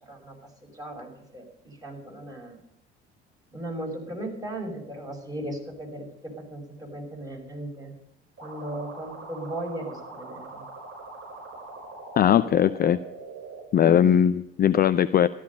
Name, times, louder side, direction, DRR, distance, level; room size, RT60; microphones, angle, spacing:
voice 1, 0.0-0.4 0.6-2.6 3.5-7.9 8.4-10.6 13.8-14.1, right 1 dB, 10° right, 0 dB, 5.8 m, -37 dB
sound 1, 8.4-13.6, right 3 dB, 40° right, 6.4 m, -42 dB
voice 2, 12.2-13.0 13.7-15.3, left 9 dB, 30° left, 13 dB, 0.5 m, -19 dB
13.5 x 13.0 x 5.4 m, 0.82 s
figure-of-eight pair, 55°, 30 cm